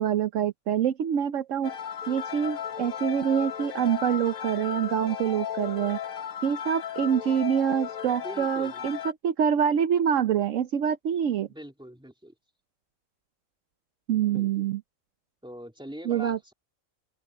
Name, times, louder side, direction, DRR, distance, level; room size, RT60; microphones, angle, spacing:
voice 1, 0.0-1.7 2.1-6.0 6.4-9.0 9.2-11.5 14.1-14.8 16.1-16.5, right 9 dB, 70° right, 1.1 m, -26 dB
sound 1, 1.6-9.1, left 9 dB, 90° left, 1.4 m, -35 dB
voice 2, 8.2-8.8 11.5-12.3 14.3-14.5 15.4-16.5, equal, 5° right, 3.0 m, -42 dB
omnidirectional pair, 1.4 m